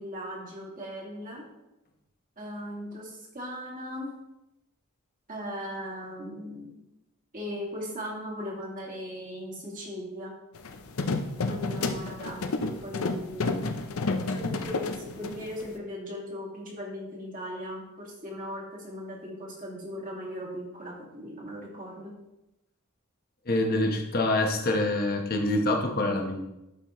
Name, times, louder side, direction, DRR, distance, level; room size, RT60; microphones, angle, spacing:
voice 1, 0.0-1.4 2.4-4.1 5.3-6.7 7.3-10.3 11.5-13.5 14.2-22.1, equal, 40° right, -3 dB, 2.1 m, -38 dB
sound 1, 10.6-15.7, left 3 dB, 70° left, 0.6 m, -30 dB
voice 2, 23.5-26.4, left 2 dB, 45° left, 3 dB, 1.1 m, -26 dB
11.5 x 4.5 x 3.1 m, 0.93 s
head